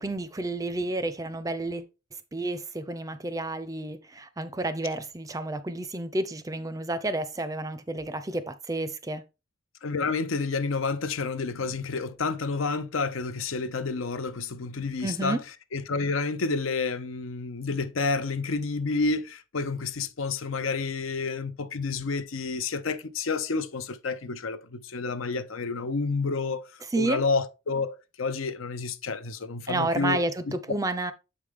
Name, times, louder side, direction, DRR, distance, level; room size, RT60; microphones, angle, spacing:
voice 1, 0.0-1.9 2.3-9.2 15.0-15.4 26.9-27.2 29.7-31.1, right 2 dB, 15° right, 0.5 m, -30 dB
voice 2, 9.8-15.4 15.7-26.7 27.0-30.2, left 4 dB, 85° left, 0.7 m, -29 dB
7.3 x 5.0 x 3.6 m
head